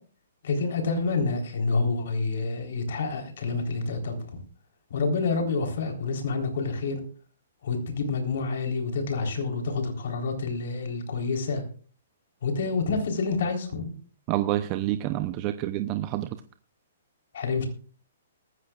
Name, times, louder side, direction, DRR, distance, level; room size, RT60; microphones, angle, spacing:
voice 1, 0.4-4.4 4.9-7.0 7.6-11.6 12.4-13.9 17.3-17.7, left 4 dB, 65° left, 3 dB, 3.9 m, -28 dB
voice 2, 14.3-16.3, right 14 dB, 30° right, 9 dB, 0.7 m, -28 dB
18.5 x 15.0 x 2.5 m, 0.43 s
hypercardioid pair, 155°, 0 cm